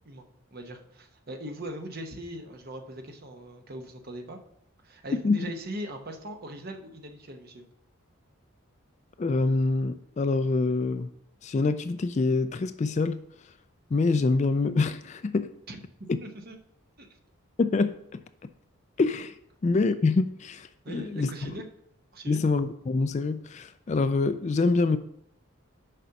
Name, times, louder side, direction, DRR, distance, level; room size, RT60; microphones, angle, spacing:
voice 1, 0.5-4.4 4.8-7.6 15.7-15.8 16.2-16.6 17.0-17.1 20.8-21.7 22.1-22.4, right 1 dB, 45° right, 1.0 m, -40 dB
voice 2, 9.2-11.1 11.4-13.2 13.9-15.5 16.1-16.2 17.6-18.2 19.0-19.3 19.6-21.5 22.3-25.0, left 3 dB, 35° left, 0.3 m, -25 dB
6.7 x 5.1 x 5.8 m
head